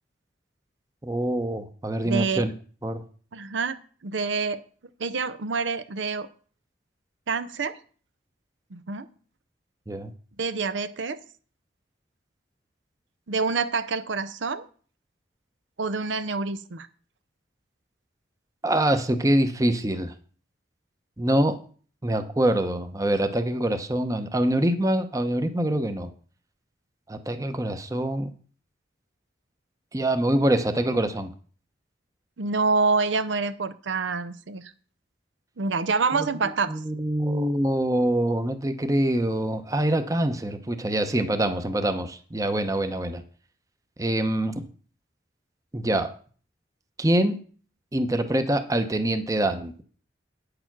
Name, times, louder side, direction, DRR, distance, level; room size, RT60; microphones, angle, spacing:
voice 1, 1.0-2.5 2.8-3.0 9.9-10.1 18.6-20.1 21.2-21.6 22.0-26.1 27.1-28.3 29.9-31.3 36.7-43.2 44.0-44.6 45.7-46.1 47.0-47.4 47.9-49.7, right 1 dB, 20° right, 8 dB, 0.8 m, -25 dB
voice 2, 2.0-2.5 3.3-4.6 5.0-6.3 7.3-7.8 8.7-9.1 10.4-11.2 13.3-14.7 15.8-16.9 32.4-34.7 35.6-36.8, right 4 dB, 85° right, 12 dB, 0.7 m, -27 dB
9.3 x 6.8 x 6.0 m, 0.43 s
head